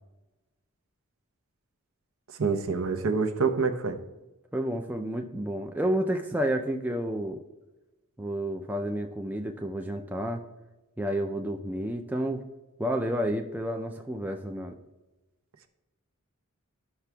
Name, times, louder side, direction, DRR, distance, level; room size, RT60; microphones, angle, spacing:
voice 1, 2.4-4.0, right 4 dB, 65° right, 6 dB, 0.7 m, -26 dB
voice 2, 4.5-7.4 8.2-10.4 11.0-12.4 12.8-14.7, right 1 dB, 10° right, 4 dB, 0.4 m, -30 dB
13.5 x 5.8 x 2.3 m, 1.1 s
head